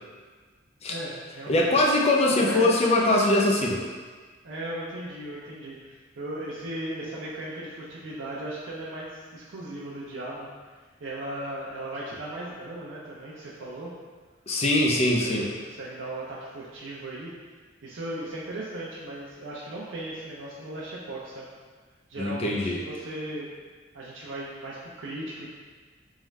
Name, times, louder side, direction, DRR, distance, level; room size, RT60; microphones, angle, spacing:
voice 1, 0.9-1.9 2.3-2.7 4.4-10.5 11.0-13.9 15.2-17.3 17.8-21.5 22.1-23.5 23.9-25.5, right 1 dB, 85° right, -6 dB, 0.6 m, -37 dB
voice 2, 1.5-3.8 14.5-15.5 22.2-22.7, left 2 dB, 35° left, -1 dB, 0.5 m, -22 dB
3.7 x 3.2 x 3.1 m, 1.4 s
head